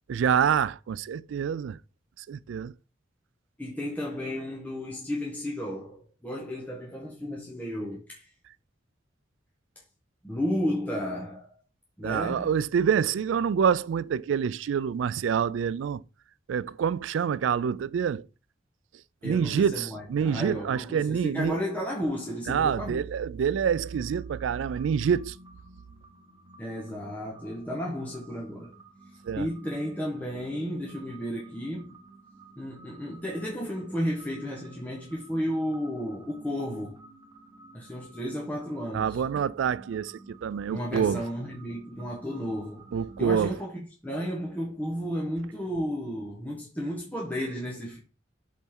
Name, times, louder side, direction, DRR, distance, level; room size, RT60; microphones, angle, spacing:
voice 1, 0.1-1.8 2.3-2.7 12.0-16.0 16.5-18.3 19.2-21.6 22.5-25.4 29.3-29.5 38.9-41.2 42.9-43.6, right 7 dB, 75° right, 0.3 m, -26 dB
voice 2, 3.6-8.3 10.2-11.5 12.0-12.5 19.2-23.0 26.6-28.7 29.4-32.0 32.6-37.0 37.7-39.2 40.7-42.9 43.2-48.0, equal, 10° left, 1.3 m, -33 dB
sound 1, 23.7-43.3, right 2 dB, 20° right, 0.9 m, -52 dB
7.3 x 4.1 x 3.8 m
head